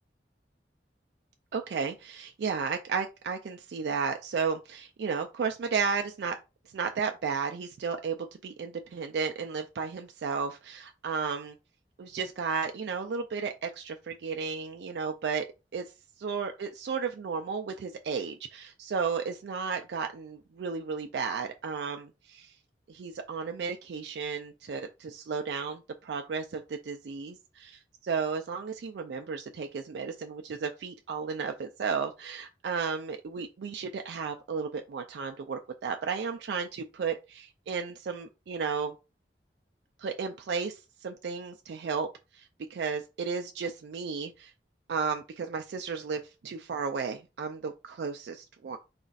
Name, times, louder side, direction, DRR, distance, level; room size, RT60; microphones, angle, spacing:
voice 1, 1.5-6.4 6.7-11.6 12.0-15.4 15.7-15.8 16.2-22.5 22.9-38.9 40.0-42.1 42.3-44.5 44.9-48.8, right 5 dB, 70° right, 0.4 m, -33 dB
4.2 x 2.3 x 3.9 m
head